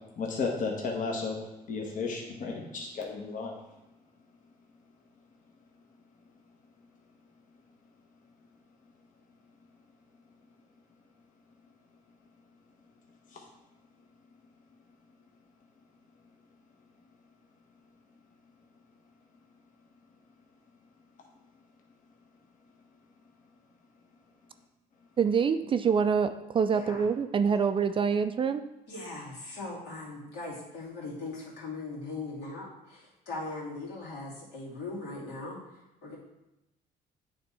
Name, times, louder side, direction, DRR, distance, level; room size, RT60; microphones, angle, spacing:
voice 1, 0.2-1.4 1.7-3.6 13.3-13.4, left 4 dB, 50° left, -1 dB, 1.1 m, -33 dB
voice 2, 25.2-28.6, right 6 dB, 30° right, 10 dB, 0.3 m, -26 dB
voice 3, 26.7-27.0 28.9-36.2, left 3 dB, 80° left, -6 dB, 2.6 m, -40 dB
8.6 x 3.5 x 4.2 m, 0.94 s
cardioid pair, 110°, 17 cm